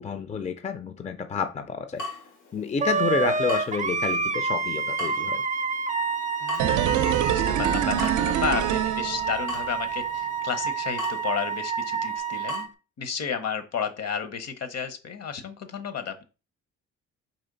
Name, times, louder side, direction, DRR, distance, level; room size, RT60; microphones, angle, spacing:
voice 1, 0.0-2.0 2.5-5.4, left 6 dB, 25° left, 9 dB, 0.4 m, -29 dB
Water tap faucet / Drip, 2.0-12.6, left 2 dB, 85° left, 1.5 m, -42 dB
Wind instrument woodwind instrument, 2.8-12.7, right 5 dB, 25° right, 0.5 m, -28 dB
voice 2, 6.4-12.7 13.0-16.2, left 7 dB, 55° left, 9 dB, 0.9 m, -32 dB
sound 1, 6.6-9.7 10.0-10.1, right 10 dB, 80° right, 0.5 m, -25 dB
4.3 x 3.1 x 3.9 m, 0.32 s
cardioid pair, 90°, 30 cm